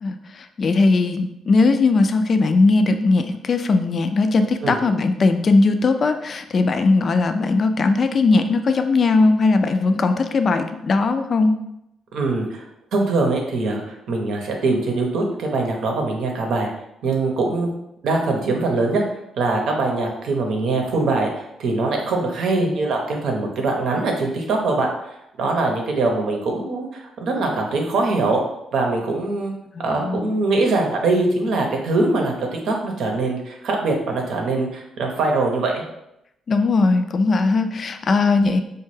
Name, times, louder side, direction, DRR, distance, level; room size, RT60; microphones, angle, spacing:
voice 1, 0.0-11.6 29.8-30.3 36.5-38.6, left 3 dB, 45° left, 8 dB, 0.3 m, -19 dB
voice 2, 12.1-12.6 12.9-16.7 17.0-17.7 18.0-19.0 19.4-24.9 25.4-28.4 28.7-29.5 29.8-35.8, right 3 dB, 70° right, 1 dB, 0.8 m, -22 dB
4.3 x 2.2 x 3.2 m, 0.83 s
cardioid pair, 90°, 0 cm